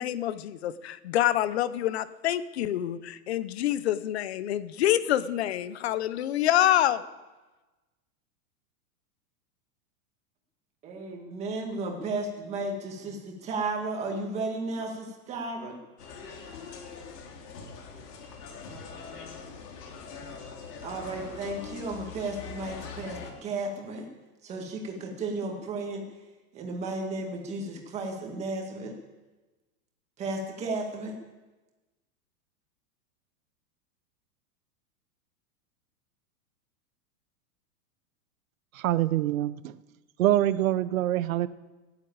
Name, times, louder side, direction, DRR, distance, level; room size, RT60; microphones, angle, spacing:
voice 1, 0.0-7.0, left 12 dB, 45° left, 15 dB, 0.7 m, -26 dB
voice 2, 10.8-15.7 20.2-20.3 20.8-24.0 24.4-26.0 26.5-28.9 30.2-31.1, right 2 dB, 15° right, 2 dB, 1.8 m, -34 dB
sound 1, 16.0-23.3, left 5 dB, 85° left, 3.2 m, -43 dB
voice 3, 38.7-39.8 40.2-41.5, right 13 dB, 60° right, 16 dB, 0.8 m, -25 dB
17.0 x 8.0 x 8.7 m, 1.2 s
supercardioid pair, 180°, 46 cm